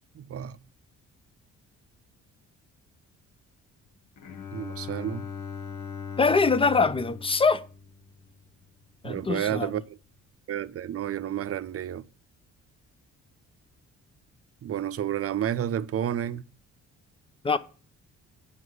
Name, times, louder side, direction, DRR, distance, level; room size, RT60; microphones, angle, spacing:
voice 1, 0.2-0.5 4.5-5.3 9.0-9.8 10.5-12.0 14.6-16.5, right 10 dB, 50° right, 0.7 m, -30 dB
Bowed string instrument, 4.2-8.7, left 5 dB, 70° left, 1.1 m, -39 dB
voice 2, 6.2-7.6 9.0-9.7 17.4-17.6, left 4 dB, 20° left, 0.7 m, -23 dB
7.9 x 6.0 x 6.4 m
cardioid pair, 90°, 30 cm